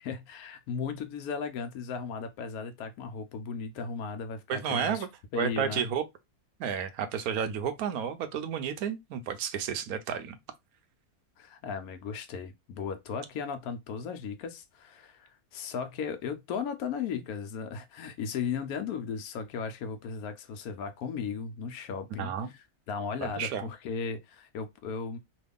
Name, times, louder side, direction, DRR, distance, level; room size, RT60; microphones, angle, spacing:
voice 1, 0.0-5.1 5.3-5.9 11.4-22.3 22.9-25.2, left 6 dB, 75° left, 1.1 m, -36 dB
voice 2, 4.5-5.1 5.4-6.0 6.6-10.4 22.2-22.5 23.2-23.7, right 8 dB, 75° right, 1.1 m, -31 dB
3.2 x 2.3 x 3.4 m
omnidirectional pair, 1.6 m